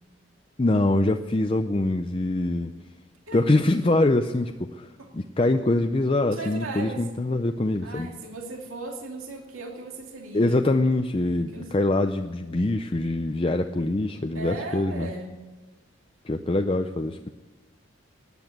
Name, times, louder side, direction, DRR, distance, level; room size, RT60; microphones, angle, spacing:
voice 1, 0.6-2.7 3.3-4.9 5.1-8.1 10.3-15.1 16.2-17.3, left 2 dB, 25° left, 6 dB, 0.5 m, -24 dB
voice 2, 3.3-3.9 5.0-5.1 6.3-7.1 7.8-10.7 11.5-11.7 14.3-15.3, right 2 dB, 90° right, 2 dB, 2.5 m, -37 dB
16.5 x 10.0 x 7.9 m, 1.2 s
head